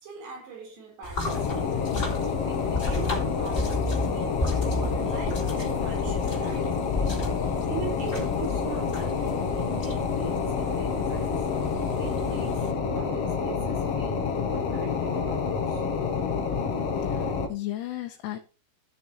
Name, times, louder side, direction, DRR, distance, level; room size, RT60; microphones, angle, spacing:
voice 1, 0.0-2.0 2.5-11.4 12.0-12.6 12.9-15.8, right 6 dB, 85° right, 6.0 m, -42 dB
sound 1, 1.0-12.7, left 3 dB, 20° left, 3.5 m, -33 dB
sound 2, 1.2-17.5, left 5 dB, 55° left, 1.9 m, -28 dB
voice 2, 17.0-18.4, left 15 dB, 80° left, 3.0 m, -35 dB
15.0 x 6.7 x 3.0 m
omnidirectional pair, 4.7 m